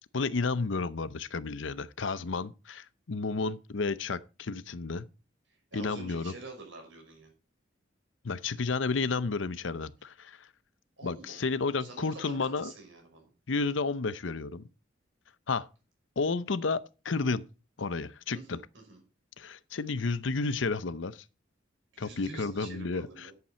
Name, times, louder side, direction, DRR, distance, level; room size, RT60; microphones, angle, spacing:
voice 1, 0.1-5.1 5.7-6.3 8.2-10.5 11.0-12.7 13.5-14.7 15.5-15.7 16.2-17.5 17.8-18.6 19.4-21.2 22.0-23.3, left 4 dB, 85° left, 0.7 m, -32 dB
voice 2, 5.7-7.3 11.0-11.4 11.8-13.3 18.3-18.6 18.9-19.0 21.9-23.3, right 3 dB, 85° right, 5.9 m, -47 dB
10.5 x 8.3 x 4.4 m
head